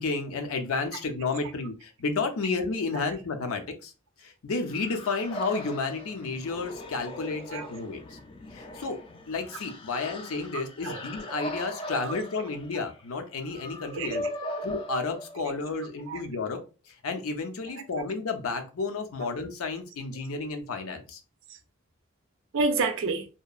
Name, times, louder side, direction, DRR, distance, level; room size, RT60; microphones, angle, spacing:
voice 1, 0.0-3.9 4.2-8.2 8.5-9.0 9.3-14.2 14.6-16.6 17.0-21.2, left 4 dB, 85° left, 0.5 m, -31 dB
sound 1, 4.7-15.7, left 1 dB, 25° left, 0.3 m, -40 dB
voice 2, 10.5-11.0 11.8-12.5 13.9-14.7 15.5-15.6 16.1-16.2 19.2-19.3 20.4-20.5 21.5-21.6 22.5-23.3, right 3 dB, 60° right, 0.4 m, -31 dB
2.8 x 2.2 x 2.3 m
head